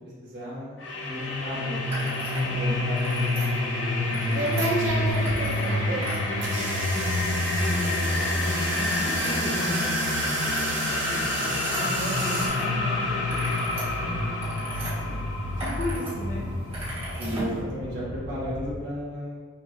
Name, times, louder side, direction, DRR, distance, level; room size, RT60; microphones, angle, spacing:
voice 1, 0.2-3.6 5.2-5.8 14.0-14.3 15.0-15.2 17.2-19.4, equal, 60° right, -8 dB, 1.3 m, -36 dB
sound 1, 0.8-18.7, left 2 dB, 80° left, 0.7 m, -28 dB
sound 2, 1.9-2.5 2.8-3.5 4.0-5.7 6.0-7.2 7.6-8.2 8.6-12.7 13.0-14.9 15.4-16.1 16.4-17.6, right 1 dB, 30° right, 1.5 m, -38 dB
voice 2, 2.3-2.6 4.0-4.6 5.9-6.1 7.5-13.5 15.6-16.5, left 1 dB, 40° left, -4 dB, 1.0 m, -36 dB
sound 3, 3.6-12.5, right 3 dB, 75° right, 0.8 m, -32 dB
5.8 x 2.5 x 3.2 m, 1.6 s
head